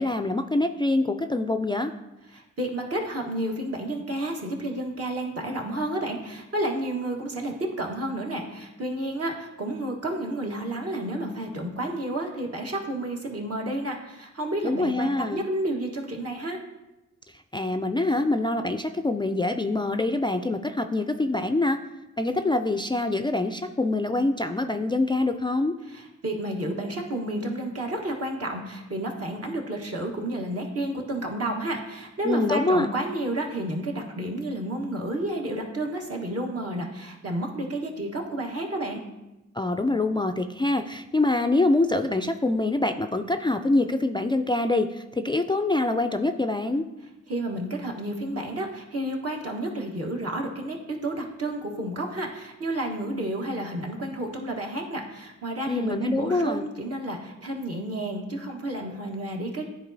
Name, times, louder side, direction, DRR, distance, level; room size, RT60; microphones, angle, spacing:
voice 1, 0.0-1.9 14.6-15.4 17.3-21.8 22.2-25.8 32.2-32.9 39.5-46.9 55.7-56.7, left 2 dB, 15° left, 7 dB, 0.3 m, -25 dB
voice 2, 2.3-16.6 25.9-39.0 47.3-59.6, right 1 dB, 55° right, 0 dB, 1.3 m, -31 dB
9.9 x 4.1 x 2.7 m, 0.99 s
cardioid pair, 45°, 30 cm